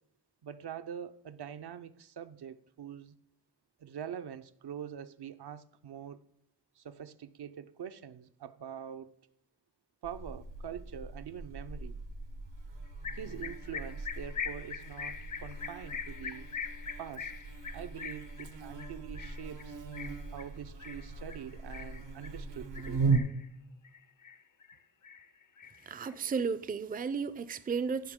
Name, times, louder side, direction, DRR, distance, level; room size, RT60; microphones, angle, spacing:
voice 1, 0.4-3.2 3.8-6.2 6.8-9.1 10.0-12.0 13.1-16.5 17.0-17.3 17.7-19.8 20.3-23.0, right 9 dB, 65° right, 0.6 m, -44 dB
Buzz, 10.0-23.2, right 4 dB, 90° right, 1.3 m, -38 dB
sound 1, 13.0-22.4 22.8-23.5 23.8-24.8 25.0-26.4, left 7 dB, 50° left, 0.6 m, -43 dB
voice 2, 25.9-28.1, right 5 dB, 20° right, 0.4 m, -33 dB
15.0 x 5.8 x 3.7 m
cardioid pair, 55°, 42 cm